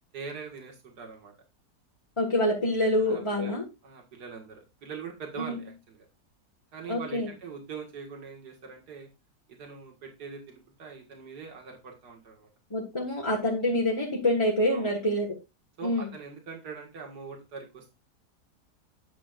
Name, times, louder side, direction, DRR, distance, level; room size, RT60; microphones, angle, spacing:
voice 1, 0.1-1.3 3.0-3.5 3.8-6.1 6.7-9.1 9.5-12.5 14.7-14.9 15.8-17.9, right 5 dB, 75° right, 1 dB, 2.5 m, -42 dB
voice 2, 2.2-3.6 5.4-5.5 6.9-7.3 12.7-15.3 15.8-16.1, left 1 dB, 20° left, -3 dB, 1.7 m, -26 dB
10.5 x 7.5 x 2.5 m, 0.26 s
omnidirectional pair, 1.8 m